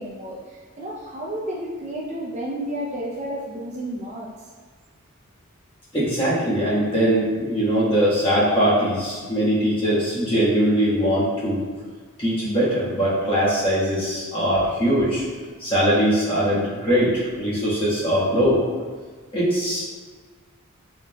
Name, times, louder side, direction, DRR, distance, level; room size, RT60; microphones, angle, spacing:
voice 1, 0.0-4.3, right 1 dB, 30° right, -4 dB, 0.5 m, -31 dB
voice 2, 5.9-11.6 12.2-15.2 15.6-18.6 19.3-20.0, equal, 25° left, -8 dB, 1.4 m, -21 dB
5.6 x 3.6 x 2.2 m, 1.5 s
head